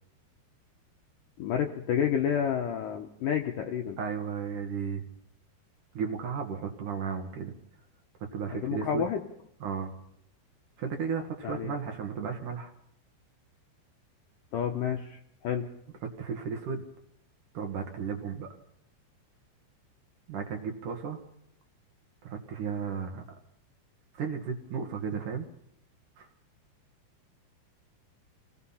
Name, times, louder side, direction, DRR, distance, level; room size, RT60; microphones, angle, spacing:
voice 1, 1.4-4.0 8.5-9.2 11.4-11.7 14.5-15.7, left 8 dB, 75° left, 3 dB, 2.1 m, -30 dB
voice 2, 4.0-5.0 5.9-7.5 8.3-9.1 9.6-9.9 10.8-12.7 16.0-16.8 17.5-18.5 20.3-21.2 22.2-23.2 24.1-25.5 26.2-26.3, right 6 dB, 55° right, 3 dB, 2.5 m, -34 dB
27.5 x 17.5 x 5.7 m, 0.75 s
omnidirectional pair, 5.2 m